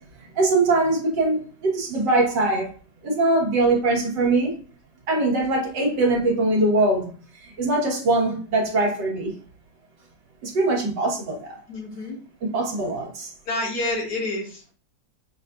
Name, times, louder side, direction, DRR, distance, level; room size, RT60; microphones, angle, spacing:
voice 1, 0.4-2.7 3.0-4.6 5.1-7.1 7.4-9.3 10.4-11.6 12.4-13.3, right 2 dB, 75° right, -2 dB, 1.9 m, -22 dB
voice 2, 11.7-12.2 13.5-14.7, left 2 dB, 65° left, 0 dB, 1.6 m, -28 dB
6.2 x 2.5 x 2.3 m, 0.39 s
omnidirectional pair, 1.9 m